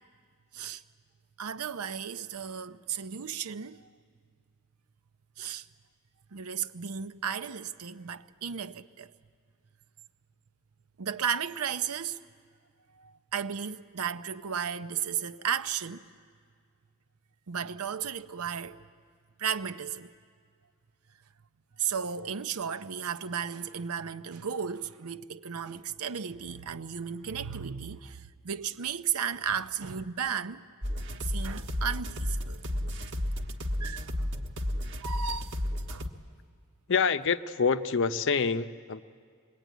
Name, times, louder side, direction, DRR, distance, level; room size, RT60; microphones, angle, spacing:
voice 1, 1.4-3.9 5.4-5.7 6.3-9.1 11.0-12.2 12.9-16.1 17.5-18.8 19.4-20.1 21.8-30.6 31.2-32.9 33.8-34.3 34.9-35.6 35.9-36.1, right 7 dB, 85° right, 0.7 m, -34 dB
sound 1, 30.8-36.1, left 1 dB, 55° right, 1.3 m, -32 dB
voice 2, 36.9-39.0, left 5 dB, 55° left, 0.6 m, -26 dB
24.0 x 21.5 x 9.2 m
head